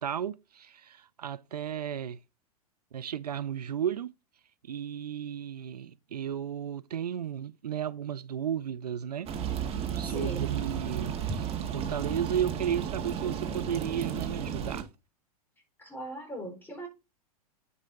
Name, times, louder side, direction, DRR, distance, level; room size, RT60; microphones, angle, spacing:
voice 1, 0.0-2.2 2.9-4.1 4.6-9.3 9.9-14.9, right 9 dB, 85° right, 0.5 m, -34 dB
sound 1, 9.3-14.8, right 8 dB, 30° right, 1.9 m, -33 dB
voice 2, 10.0-10.5 15.8-16.9, right 1 dB, 10° left, 4.4 m, -39 dB
10.5 x 5.5 x 3.9 m
hypercardioid pair, 100°, 20 cm